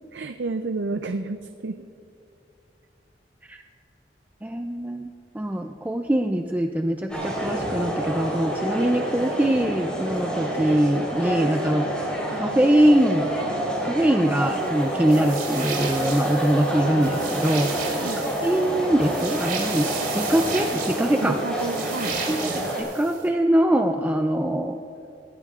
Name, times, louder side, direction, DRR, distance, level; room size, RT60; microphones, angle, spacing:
voice 1, 0.1-1.8 18.0-18.2 21.2-22.7, right 3 dB, 75° right, 8 dB, 0.5 m, -31 dB
voice 2, 4.4-5.1 5.3-11.9 12.3-13.3 13.8-18.1 18.4-21.4 22.3-22.5 22.8-24.8, right 1 dB, 10° right, 5 dB, 0.4 m, -23 dB
sound 1, 7.1-22.8, right 1 dB, 5° left, 3.9 m, -28 dB
sound 2, 15.1-23.3, right 6 dB, 55° right, 3.0 m, -34 dB
21.5 x 16.0 x 2.4 m, 2.5 s
head